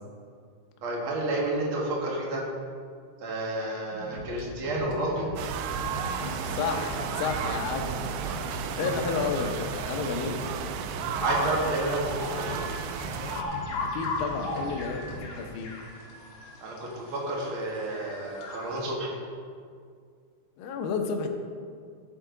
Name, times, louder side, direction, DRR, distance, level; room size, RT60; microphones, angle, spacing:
voice 1, 0.8-2.4 3.2-5.3 8.5-8.9 11.2-12.6 16.6-19.1, right 2 dB, 70° right, -3 dB, 1.2 m, -30 dB
sound 1, 3.9-15.2, left 1 dB, 45° right, 1.6 m, -40 dB
sound 2, 5.4-13.4, right 7 dB, 85° right, 2.9 m, -34 dB
voice 2, 6.5-7.9 8.5-10.4 13.7-15.7 20.6-21.3, left 5 dB, 75° left, 3 dB, 2.1 m, -31 dB
sound 3, 11.2-18.9, left 2 dB, 50° left, 2.2 m, -37 dB
14.5 x 8.0 x 3.9 m, 2.1 s
omnidirectional pair, 5.2 m